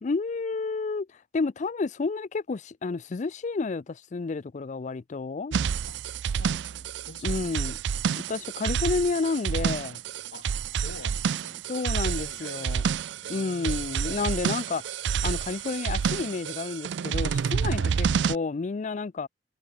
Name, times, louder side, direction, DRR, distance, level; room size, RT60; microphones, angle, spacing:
voice 1, 0.0-5.6 7.2-7.8 8.2-10.0 11.7-12.8 13.3-15.0 15.2-19.3, left 4 dB, 40° left, 0.4 m, -30 dB
sound 1, 5.5-18.4, right 7 dB, 70° right, 0.4 m, -29 dB
voice 2, 5.9-7.6 10.3-12.8 13.2-14.3 17.8-18.0, left 2 dB, 80° left, 2.7 m, -49 dB
head